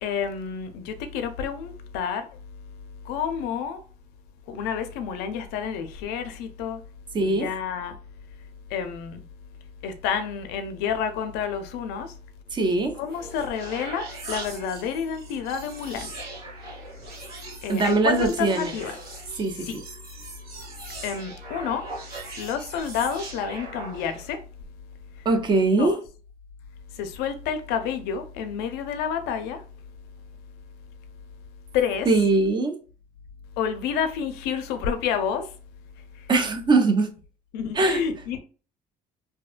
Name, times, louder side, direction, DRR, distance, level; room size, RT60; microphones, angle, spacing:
voice 1, 0.0-2.3 3.0-3.8 4.5-6.8 7.2-8.0 8.7-9.2 9.8-12.1 13.0-16.1 17.6-19.0 19.6-19.8 21.0-21.9 22.4-24.4 25.8-26.0 26.9-29.6 31.7-32.1 33.6-35.5 36.2-36.3 37.5-38.4, left 7 dB, 90° left, 0.4 m, -29 dB
voice 2, 7.1-7.5 12.5-12.9 17.7-18.7 19.4-19.8 25.3-26.0 32.1-32.8 36.3-37.1 37.7-38.0, right 3 dB, 30° right, 0.5 m, -21 dB
sound 1, 12.9-24.3, right 2 dB, 75° right, 1.2 m, -40 dB
2.6 x 2.1 x 2.4 m
cardioid pair, 105°, 16 cm